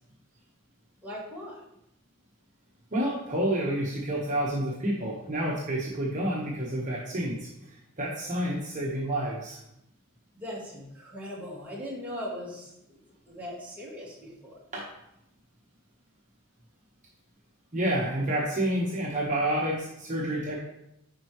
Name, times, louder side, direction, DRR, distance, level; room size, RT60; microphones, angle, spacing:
voice 1, 1.0-1.6 10.3-13.0 13.3-14.6, equal, 10° right, -6 dB, 2.0 m, -39 dB
voice 2, 2.9-9.6 14.7-14.8 17.7-20.6, right 1 dB, 40° right, -4 dB, 1.2 m, -29 dB
10.0 x 4.5 x 3.1 m, 0.81 s
head